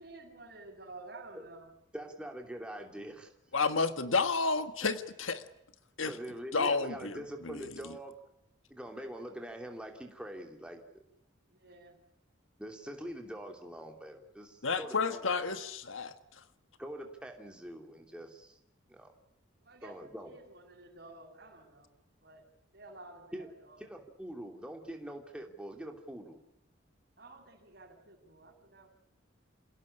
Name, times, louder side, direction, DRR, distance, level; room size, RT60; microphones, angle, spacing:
voice 1, 0.0-1.7 11.5-12.0 19.6-21.9 22.2-22.5 22.7-23.8 27.2-28.9, right 2 dB, 50° right, 2 dB, 6.9 m, -52 dB
voice 2, 1.9-3.3 6.0-8.2 8.7-11.0 12.6-15.3 16.8-18.6 18.9-19.1 19.8-20.3 23.3-23.5 23.8-26.4, equal, 5° right, 2 dB, 3.0 m, -44 dB
voice 3, 3.5-5.4 6.0-6.1 6.5-7.6 14.6-16.1, left 4 dB, 85° left, 10 dB, 1.5 m, -31 dB
27.5 x 17.5 x 10.0 m, 0.83 s
head